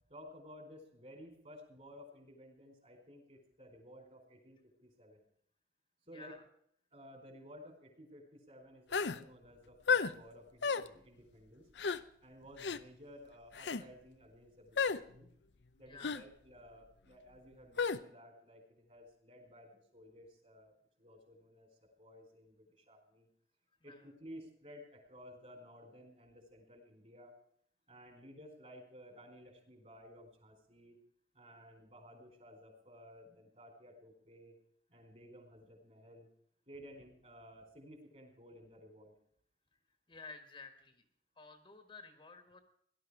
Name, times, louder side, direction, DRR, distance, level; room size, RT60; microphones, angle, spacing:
voice 1, 0.1-5.2 6.1-6.4 6.9-11.7 12.2-15.3 15.8-20.7 21.0-23.3 23.8-27.3 27.9-31.0 31.3-34.6 34.9-36.3 36.7-39.1, equal, 40° right, 4 dB, 4.5 m, -55 dB
voice 2, 6.1-6.4 15.9-16.1 23.7-24.1 40.1-41.0 41.4-42.6, left 4 dB, 30° left, 7 dB, 1.6 m, -53 dB
sound 1, 8.9-9.2 9.9-10.1 10.6-10.9 11.8-12.0 12.6-12.8 13.5-13.8 14.8-15.0 16.0-16.2 17.8-18.0, left 5 dB, 85° left, 0.7 m, -32 dB
17.5 x 12.0 x 4.9 m, 0.65 s
head